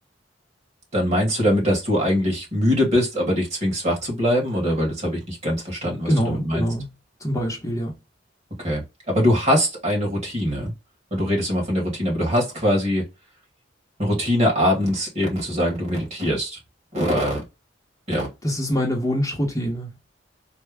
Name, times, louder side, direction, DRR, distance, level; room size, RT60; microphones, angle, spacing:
voice 1, 0.9-6.6 8.6-10.7 11.1-13.0 14.0-16.6 16.9-17.4 18.1-18.3, equal, 35° right, 1.8 m, -22 dB
voice 2, 6.0-6.9 7.2-7.9 18.4-19.9, equal, 15° left, 0.9 m, -24 dB
3.3 x 2.2 x 3.4 m
head